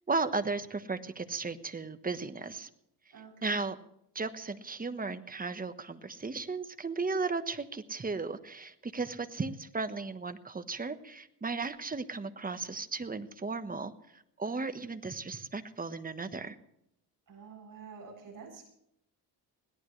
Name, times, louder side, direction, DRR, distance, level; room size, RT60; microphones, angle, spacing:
voice 1, 0.1-2.7 3.4-3.8 4.1-13.9 14.4-16.6, right 4 dB, 20° right, 10 dB, 1.2 m, -35 dB
voice 2, 3.1-3.7 17.3-18.6, right 5 dB, 50° right, 0 dB, 7.9 m, -49 dB
21.5 x 17.5 x 3.3 m, 0.77 s
cardioid pair, 115°, 40 cm